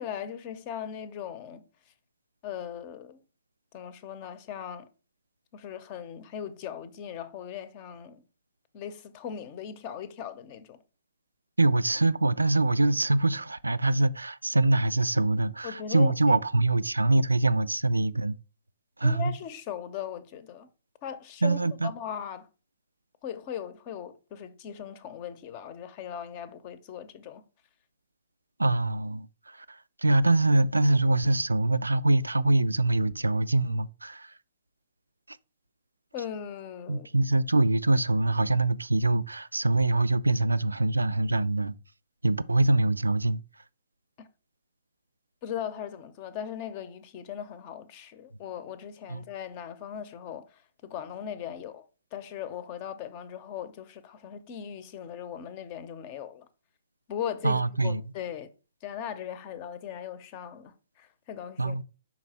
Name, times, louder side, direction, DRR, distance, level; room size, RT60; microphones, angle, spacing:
voice 1, 0.0-1.6 2.4-3.2 3.7-4.9 5.5-8.2 8.7-10.8 15.6-16.4 19.0-20.7 21.0-22.5 23.2-27.4 36.1-37.1 44.2-44.3 45.4-51.8 52.1-56.5 57.1-58.5 58.8-61.8, left 9 dB, 35° left, 0.7 m, -39 dB
voice 2, 11.6-18.3 19.0-19.3 21.4-21.9 28.6-34.3 35.3-35.4 36.9-41.8 42.2-43.4 49.1-49.2 57.4-58.0 61.6-61.8, right 2 dB, 80° right, 0.3 m, -24 dB
5.8 x 4.0 x 4.3 m
figure-of-eight pair, 120°, 0 cm